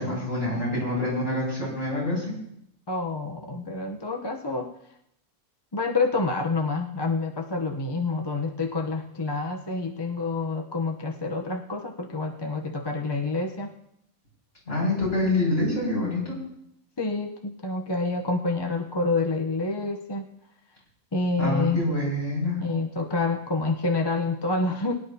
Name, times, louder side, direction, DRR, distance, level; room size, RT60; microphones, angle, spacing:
voice 1, 0.0-2.3 14.7-16.4 21.4-22.6, left 1 dB, 65° left, -5 dB, 6.9 m, -26 dB
voice 2, 2.9-4.7 5.7-13.7 17.0-20.3 21.1-21.8 22.6-24.9, left 3 dB, 25° left, 3 dB, 0.6 m, -28 dB
22.0 x 11.0 x 2.8 m, 0.76 s
omnidirectional pair, 1.5 m